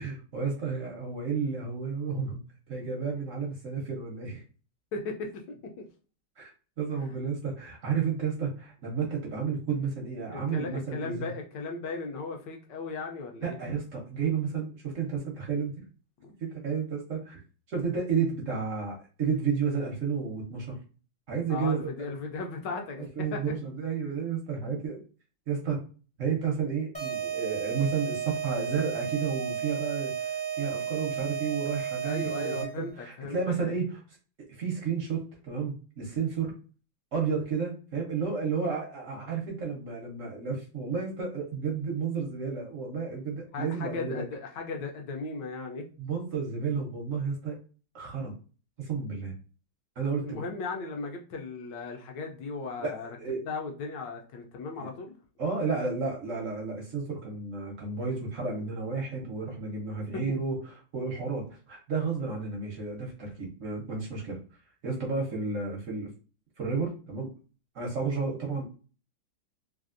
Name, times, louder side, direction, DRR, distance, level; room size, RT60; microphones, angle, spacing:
voice 1, 0.0-2.4 2.7-4.4 6.4-6.5 6.8-11.3 13.4-15.7 16.4-17.4 17.7-20.8 21.3-21.9 23.0-25.0 25.5-25.8 26.2-34.0 34.5-36.5 37.1-44.2 46.0-47.6 47.9-48.3 48.8-49.3 50.0-50.4 52.8-53.5 54.8-54.9 55.4-64.4 64.8-66.1 66.6-67.3 67.7-68.7, right 5 dB, 70° right, 0 dB, 0.7 m, -32 dB
voice 2, 4.9-5.5 6.9-7.1 10.3-13.6 16.2-16.3 21.5-23.4 32.0-33.8 43.5-45.8 50.2-53.2 53.4-55.2 60.1-60.2, left 4 dB, 70° left, 2 dB, 1.1 m, -37 dB
sound 1, 26.9-32.9, right 8 dB, 5° left, 0.5 m, -33 dB
3.3 x 2.5 x 2.4 m, 0.37 s
omnidirectional pair, 2.3 m